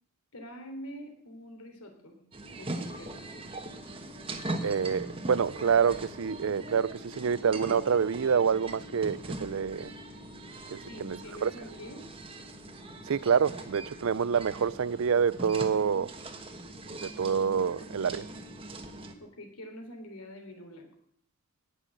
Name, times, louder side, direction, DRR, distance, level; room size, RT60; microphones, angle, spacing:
voice 1, 0.3-3.4 10.9-12.0 19.2-20.9, equal, 85° left, 3.5 m, -45 dB
sound 1, 2.3-19.1, right 1 dB, 25° right, 1.3 m, -41 dB
voice 2, 4.6-9.9 10.7-11.5 13.1-16.1 17.0-18.3, right 6 dB, 65° right, 0.4 m, -27 dB
18.0 x 6.3 x 7.7 m
head